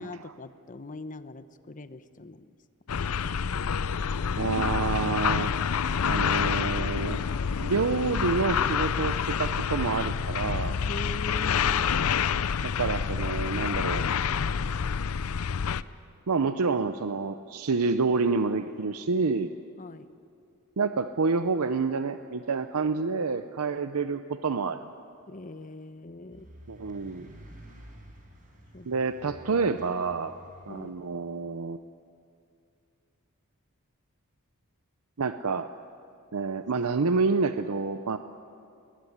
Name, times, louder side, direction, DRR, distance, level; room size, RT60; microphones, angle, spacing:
voice 1, 0.0-2.5 10.9-12.0 19.8-20.1 25.3-26.5 28.7-28.9 30.7-31.0, left 2 dB, 35° left, 12 dB, 0.9 m, -42 dB
sound 1, 2.9-15.8, left 6 dB, 70° left, 0.5 m, -28 dB
voice 2, 4.4-5.5 6.0-7.2 7.6-10.8 12.6-14.0 16.3-19.5 20.8-24.8 26.7-27.3 28.8-30.3 30.7-31.8 35.2-35.7 36.3-38.2, right 4 dB, 75° right, 9 dB, 0.7 m, -28 dB
sound 2, 26.3-30.9, equal, 40° right, 4.7 m, -50 dB
20.5 x 20.0 x 9.9 m, 2.4 s
head